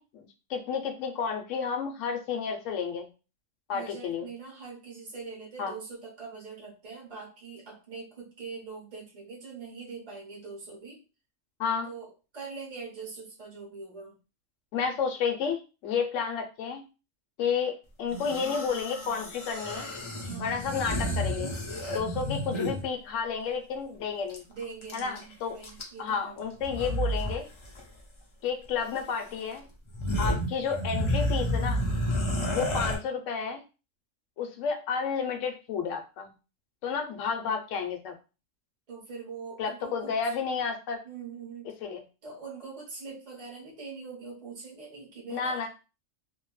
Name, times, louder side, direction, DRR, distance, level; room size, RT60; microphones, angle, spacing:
voice 1, 0.0-3.1 3.7-4.3 5.6-5.7 11.6-11.9 14.7-16.8 17.4-19.9 20.4-21.5 21.9-24.4 24.9-25.6 26.0-27.5 28.4-29.7 30.2-31.8 32.5-33.6 34.4-36.3 36.8-38.2 39.6-41.0 41.8-42.0 45.3-45.7, left 6 dB, 80° left, 4 dB, 0.9 m, -31 dB
voice 2, 3.7-11.0 11.9-14.2 20.2-20.6 24.5-26.4 38.9-40.3 41.0-41.7 42.2-45.7, right 5 dB, 35° right, -4 dB, 1.1 m, -43 dB
sound 1, 18.1-22.9 24.3-24.4 24.6-25.2 25.6-26.1 26.6-27.4 27.6-27.8 29.0-29.1 29.5-29.6 29.9-33.0, equal, 50° left, 0.3 m, -31 dB
2.7 x 2.1 x 3.0 m, 0.32 s
omnidirectional pair, 1.3 m